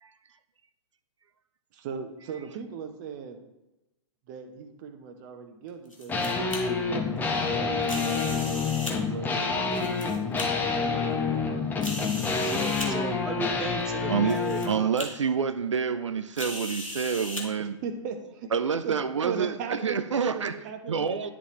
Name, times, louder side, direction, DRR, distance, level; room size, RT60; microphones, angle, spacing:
voice 1, 1.8-3.4 4.3-6.2 6.7-10.5 17.6-18.5 18.8-18.9 19.2-20.0 20.3-21.3, right 6 dB, 35° right, 7 dB, 0.9 m, -38 dB
sound 1, 5.7-6.6 7.8-8.9 9.6-10.5 11.1-11.2 11.8-12.9 13.8-13.9 14.3-14.7 15.0-15.1 16.4-17.4, left 1 dB, 85° left, 1.6 m, -37 dB
sound 2, 6.1-14.8, left 4 dB, 10° left, 0.9 m, -28 dB
voice 2, 12.4-15.1, right 2 dB, 5° right, 4 dB, 0.3 m, -37 dB
voice 3, 14.1-17.8 18.5-20.5 20.9-21.3, right 6 dB, 70° right, 10 dB, 0.5 m, -28 dB
11.0 x 4.0 x 3.1 m, 0.97 s
figure-of-eight pair, 110°, 16 cm